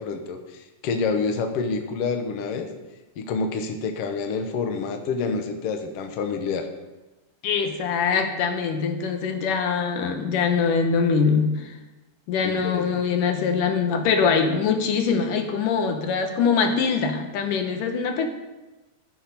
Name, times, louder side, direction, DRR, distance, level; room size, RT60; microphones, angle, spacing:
voice 1, 0.0-2.7 3.2-6.7 12.4-13.0, left 4 dB, 85° left, 5 dB, 1.3 m, -28 dB
voice 2, 7.4-11.8 12.3-18.3, left 5 dB, 70° left, 5 dB, 2.4 m, -23 dB
14.5 x 7.0 x 5.4 m, 1.1 s
omnidirectional pair, 4.3 m